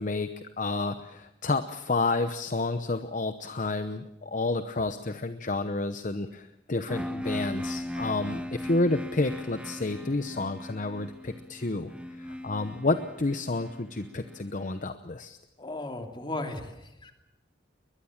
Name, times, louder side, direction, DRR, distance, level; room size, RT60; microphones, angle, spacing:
voice 1, 0.0-11.9 12.2-15.4, left 2 dB, 45° left, 10 dB, 0.9 m, -30 dB
sound 1, 6.9-14.7, left 1 dB, 5° right, 0.9 m, -38 dB
voice 2, 15.6-17.1, left 2 dB, 25° left, 4 dB, 2.8 m, -36 dB
22.0 x 21.5 x 7.3 m, 0.92 s
head